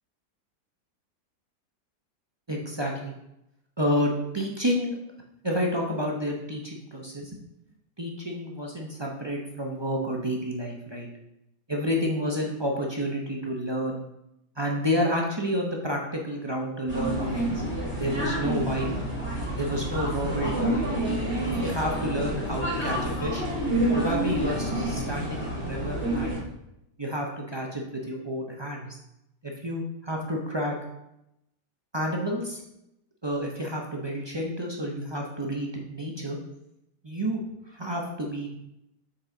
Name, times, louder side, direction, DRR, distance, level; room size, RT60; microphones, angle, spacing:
voice 1, 2.5-3.1 3.8-4.9 5.4-7.4 8.0-11.1 11.7-14.0 14.6-17.6 18.0-19.1 19.6-20.7 21.4-23.4 23.9-26.4 27.0-29.0 29.4-30.7 31.9-32.6 33.2-36.4 37.0-38.5, equal, 30° right, -1 dB, 0.5 m, -30 dB
sound 1, 16.9-26.4, right 1 dB, 5° left, 2.1 m, -28 dB
7.2 x 4.6 x 3.8 m, 0.84 s
omnidirectional pair, 1.8 m